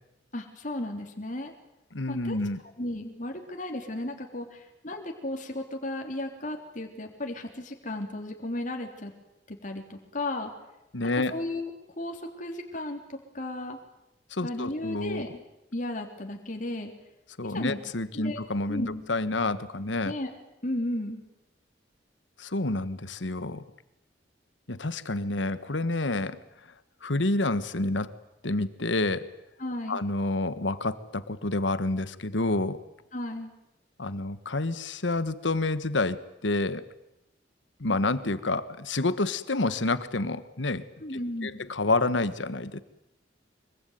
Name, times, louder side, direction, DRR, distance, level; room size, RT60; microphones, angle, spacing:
voice 1, 0.3-1.5 2.1-2.4 2.8-9.1 9.5-10.5 11.2-13.8 14.4-15.4 15.7-16.9 17.4-17.8 18.1-18.4 18.7-19.0 20.0-20.3 20.6-21.2 29.6-30.0 33.1-33.5 41.0-41.6, left 1 dB, 45° left, 3 dB, 3.4 m, -34 dB
voice 2, 1.9-2.6 10.9-11.4 14.3-15.2 17.4-20.1 22.4-23.6 24.7-26.4 27.0-28.2 28.4-29.3 29.9-32.8 34.0-36.9 37.8-40.9 41.4-42.8, left 2 dB, 85° left, 14 dB, 1.4 m, -28 dB
24.5 x 23.5 x 9.4 m, 0.88 s
head